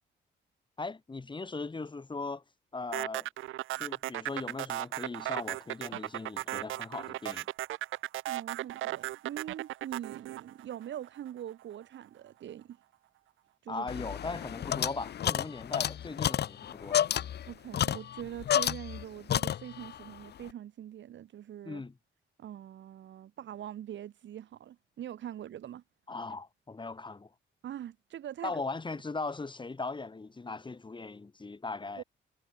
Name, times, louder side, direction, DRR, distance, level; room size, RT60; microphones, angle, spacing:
voice 1, 0.8-2.4 2.7-3.3 3.8-7.5 13.7-17.1 21.6-21.9 26.1-27.3 28.4-32.0, left 3 dB, 25° left, 4.4 m, -39 dB
sound 1, 2.9-11.3, right 15 dB, 85° right, 1.5 m, -36 dB
voice 2, 8.3-12.8 13.6-13.9 17.5-21.8 22.4-25.8 27.6-28.6 32.0-32.1, right 11 dB, 70° right, 2.9 m, -43 dB
sound 2, 13.9-19.0 19.3-20.0, left 10 dB, 55° left, 1.0 m, -31 dB
cardioid pair, 90°, 20 cm